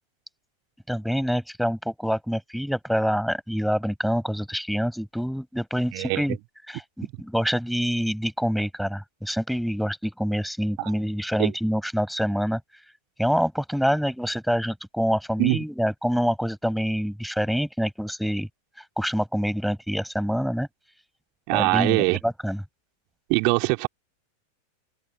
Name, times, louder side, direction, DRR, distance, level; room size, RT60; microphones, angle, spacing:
voice 1, 0.9-6.4 6.7-12.6 13.2-18.5 19.0-20.7 21.5-22.6, equal, ahead, 5.3 m, -26 dB
voice 2, 5.9-6.2 10.8-10.9 11.4-11.5 15.4-15.6 21.5-22.2 23.3-23.9, right 36 dB, 45° right, 3.5 m, -22 dB
figure-of-eight pair, 90°, 0 cm